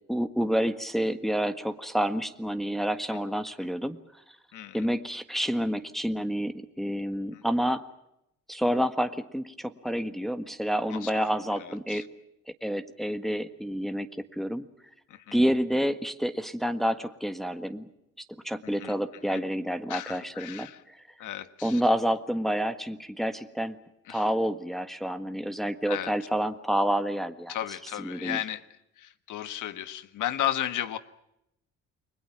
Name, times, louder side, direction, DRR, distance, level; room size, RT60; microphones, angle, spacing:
voice 1, 0.1-4.0 4.7-7.8 8.5-12.1 12.6-14.7 15.3-17.9 18.4-21.0 21.6-23.8 24.1-27.5 28.0-28.4, equal, ahead, 8 dB, 1.6 m, -29 dB
voice 2, 4.5-4.9 7.3-7.4 10.9-11.1 11.5-12.1 13.0-13.1 15.1-15.4 18.8-19.0 19.3-19.4 19.9-20.8 21.2-21.8 24.1-24.2 25.9-26.1 27.5-28.6 29.0-31.0, left 12 dB, 80° left, 11 dB, 1.6 m, -34 dB
29.5 x 21.0 x 6.0 m, 0.81 s
cardioid pair, 90°, 30 cm